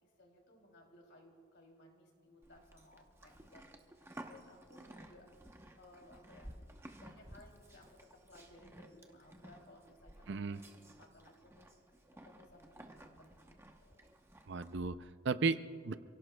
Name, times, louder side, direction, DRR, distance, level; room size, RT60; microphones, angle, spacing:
voice 1, 0.0-5.3 5.8-6.6 6.9-11.6 12.2-14.1, left 1 dB, 55° left, 1 dB, 2.9 m, -61 dB
Livestock farm animals working animals, 2.4-14.9, right 1 dB, 10° right, 0.8 m, -55 dB
voice 2, 10.3-10.6 14.5-16.0, right 4 dB, 55° right, 12 dB, 0.5 m, -35 dB
28.0 x 17.0 x 2.3 m, 2.1 s
head